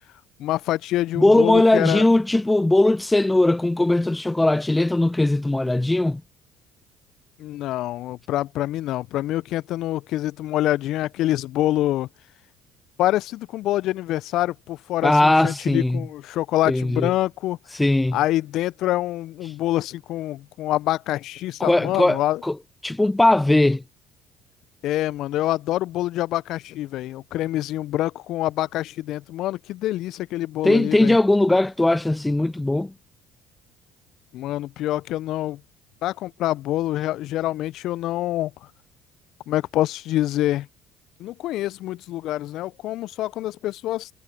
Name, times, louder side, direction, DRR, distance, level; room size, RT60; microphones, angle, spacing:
voice 1, 0.4-2.0 7.4-12.1 13.0-17.6 18.1-22.4 24.8-31.2 34.3-35.6 36.0-38.5 39.5-40.7 41.2-44.1, left 14 dB, 65° left, 0.6 m, -26 dB
voice 2, 1.2-6.2 15.0-16.0 16.7-17.1 17.8-18.2 21.6-22.6 22.8-23.8 30.6-32.9, left 2 dB, 10° left, 0.4 m, -19 dB
hypercardioid pair, 55°, 0 cm